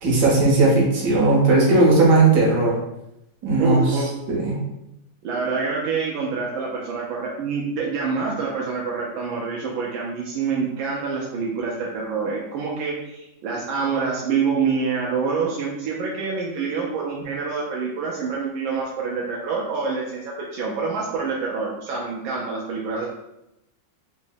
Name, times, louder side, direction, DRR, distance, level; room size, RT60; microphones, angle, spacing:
voice 1, 0.0-2.8 3.4-3.8 4.3-4.5, right 3 dB, 65° right, -4 dB, 1.6 m, -17 dB
voice 2, 3.6-4.1 4.4-4.5 5.2-23.1, right 5 dB, 85° right, -3 dB, 1.4 m, -26 dB
3.7 x 2.0 x 3.8 m, 0.86 s
omnidirectional pair, 2.1 m